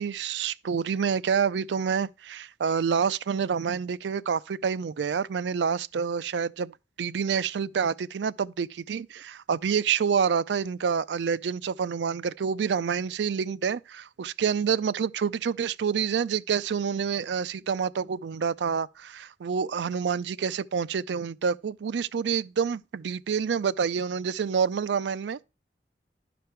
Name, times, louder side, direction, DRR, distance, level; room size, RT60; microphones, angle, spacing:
voice 1, 0.0-25.4, right 6 dB, 80° right, 0.4 m, -28 dB
11.5 x 5.2 x 4.4 m
head